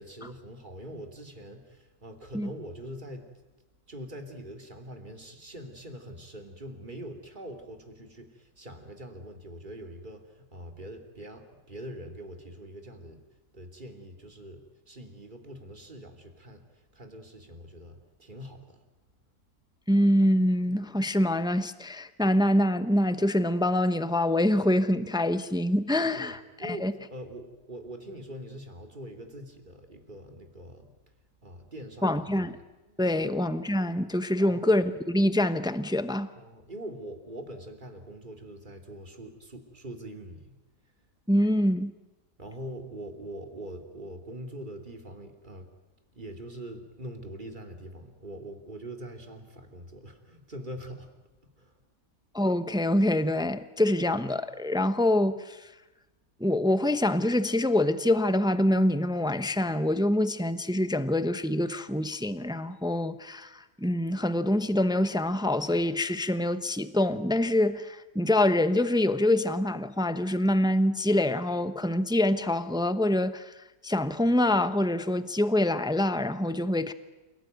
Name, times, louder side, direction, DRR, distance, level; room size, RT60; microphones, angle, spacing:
voice 1, 0.0-3.3 3.9-13.2 13.5-18.7 26.1-26.3 26.6-30.9 31.4-32.5 32.9-33.3 34.4-34.6 36.4-40.5 42.4-45.7 46.1-51.1 51.6-51.7, right 1 dB, 25° right, 3.0 m, -43 dB
voice 2, 19.9-26.9 32.0-32.6 33.0-36.3 41.3-41.9 52.3-55.7 56.4-73.5 73.8-76.9, left 1 dB, 5° right, 0.5 m, -25 dB
28.5 x 18.5 x 9.3 m
omnidirectional pair, 1.9 m